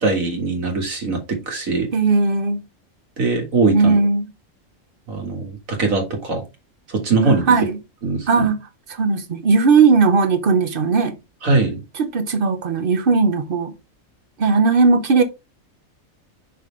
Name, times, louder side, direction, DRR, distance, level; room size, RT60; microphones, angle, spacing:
voice 1, 0.0-1.9 3.2-4.0 5.1-6.4 6.9-7.4 8.0-8.5 11.4-11.8, right 3 dB, 75° right, 2.2 m, -21 dB
voice 2, 1.9-2.6 3.7-4.3 7.2-7.8 8.3-8.6 8.9-11.2 12.0-13.7 14.4-15.2, right 4 dB, 45° right, 1.0 m, -17 dB
5.8 x 5.4 x 3.2 m
omnidirectional pair, 1.4 m